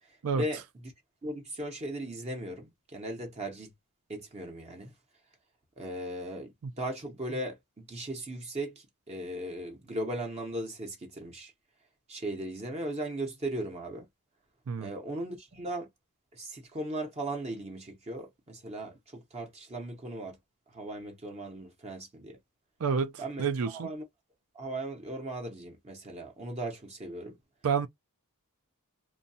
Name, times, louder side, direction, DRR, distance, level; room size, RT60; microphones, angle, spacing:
voice 1, 1.2-3.7 4.1-4.9 5.8-11.5 12.1-14.1 14.8-15.9 16.3-20.4 20.7-22.4 23.2-24.0 24.5-27.4, right 1 dB, 30° right, 0.7 m, -37 dB
voice 2, 22.8-23.1 23.4-23.9 27.6-27.9, right 6 dB, 70° right, 0.5 m, -28 dB
2.6 x 2.2 x 2.6 m
head